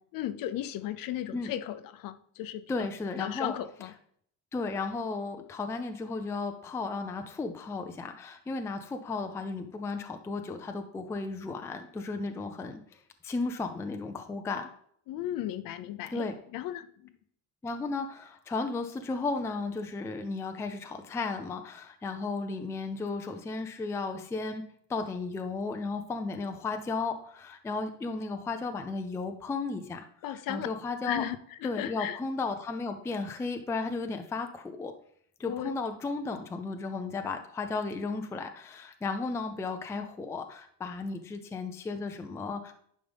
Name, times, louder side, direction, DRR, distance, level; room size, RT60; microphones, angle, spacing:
voice 1, 0.1-2.6 3.2-3.9 15.1-16.3 16.5-17.1 30.2-30.7 31.0-32.2 35.5-35.7, left 12 dB, 55° left, 13 dB, 0.7 m, -35 dB
voice 2, 2.7-3.5 4.5-12.8 13.2-14.7 16.1-16.3 17.6-24.6 24.9-31.2 31.6-34.9 35.4-42.7, left 3 dB, 5° left, 6 dB, 0.4 m, -34 dB
10.5 x 5.3 x 3.5 m, 0.64 s
cardioid pair, 170°, 40 cm